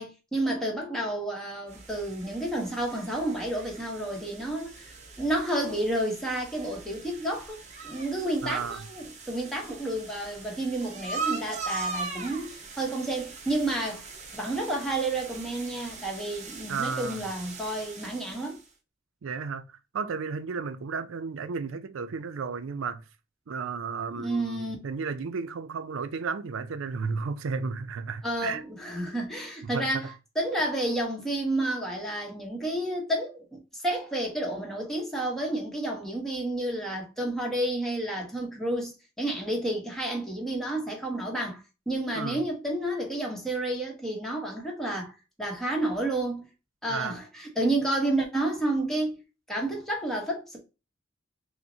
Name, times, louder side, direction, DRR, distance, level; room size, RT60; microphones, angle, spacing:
voice 1, 0.0-14.1 14.3-18.6 24.2-24.8 28.2-46.5 46.8-49.1 49.5-50.6, right 1 dB, ahead, 1.0 m, -30 dB
sound 1, 1.7-18.7, right 4 dB, 35° right, 0.7 m, -40 dB
voice 2, 8.4-8.8 16.7-17.2 19.2-23.0 23.5-28.6 29.6-30.1 42.1-42.4 46.9-47.2, right 5 dB, 85° right, 0.4 m, -33 dB
5.7 x 2.1 x 2.7 m
head